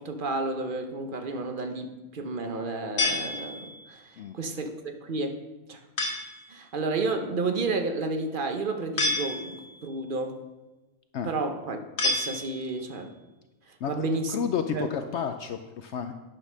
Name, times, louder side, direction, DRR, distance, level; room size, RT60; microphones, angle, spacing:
voice 1, 0.0-5.4 5.7-5.8 6.5-10.4 11.2-13.1 13.7-14.4 14.7-14.9, right 3 dB, 45° right, 6 dB, 0.9 m, -31 dB
sound 1, 3.0-3.9 6.0-6.5 9.0-9.8 12.0-12.9, left 2 dB, 45° left, 1.5 m, -29 dB
voice 2, 13.8-16.1, left 7 dB, 65° left, 7 dB, 0.8 m, -31 dB
9.0 x 5.5 x 6.2 m, 1.1 s
omnidirectional pair, 1.4 m